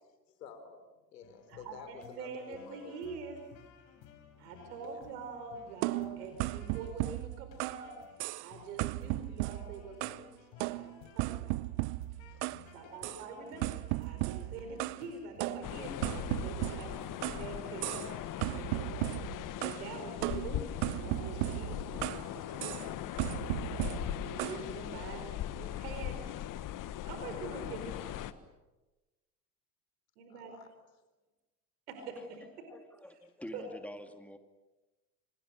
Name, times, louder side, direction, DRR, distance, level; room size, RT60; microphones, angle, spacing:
voice 1, 0.4-0.8 1.1-2.9 4.8-5.0 12.3-12.6 30.3-30.7, left 6 dB, 75° left, 9 dB, 4.1 m, -51 dB
sound 1, 1.2-18.9, left 7 dB, 55° left, 5.3 m, -57 dB
voice 2, 1.5-3.4 4.4-8.0 8.4-11.7 12.7-16.9 17.2-19.0 19.6-22.9 23.8-26.2 27.0-28.3 30.2-30.6 31.9-32.7 33.5-33.6, right 4 dB, 65° right, 5 dB, 5.0 m, -45 dB
sound 2, 5.8-7.9 8.2-8.5 8.8-10.3 10.6-12.6 13.0-13.2 13.6-15.0 15.4-17.5 17.8-18.1 18.4-19.8 20.2-22.3 22.6-22.9 23.2-24.6, right 22 dB, 50° right, 0.8 m, -36 dB
sound 3, 15.6-28.3, left 12 dB, 40° left, 1.4 m, -40 dB
voice 3, 32.7-34.4, left 1 dB, 5° left, 7 dB, 2.5 m, -47 dB
30.0 x 26.0 x 6.6 m, 1.1 s
hypercardioid pair, 75°, 49 cm